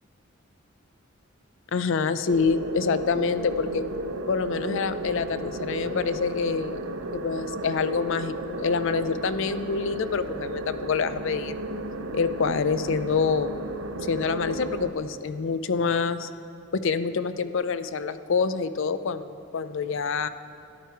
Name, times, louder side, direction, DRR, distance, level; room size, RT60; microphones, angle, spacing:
voice 1, 1.7-3.9 4.3-6.8 7.1-11.5 12.1-13.6 14.0-16.3 16.7-20.3, left 5 dB, 65° left, 12 dB, 0.5 m, -26 dB
sound 1, 2.3-14.9, right 2 dB, 75° right, 0.7 m, -34 dB
13.5 x 11.0 x 4.6 m, 2.9 s
head